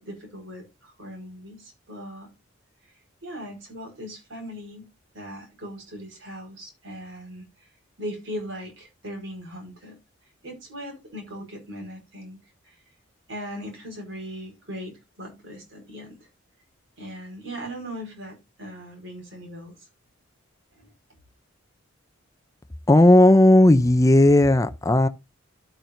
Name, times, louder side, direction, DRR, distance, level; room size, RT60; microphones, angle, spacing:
voice 1, 0.0-2.3 3.2-4.9 5.1-7.4 8.0-9.9 10.4-12.4 12.6-12.7 13.3-16.2 17.0-19.7 20.7-20.9, equal, 60° right, 4.9 m, -39 dB
voice 2, 22.9-25.1, left 1 dB, 15° left, 0.5 m, -15 dB
12.0 x 8.6 x 2.6 m
head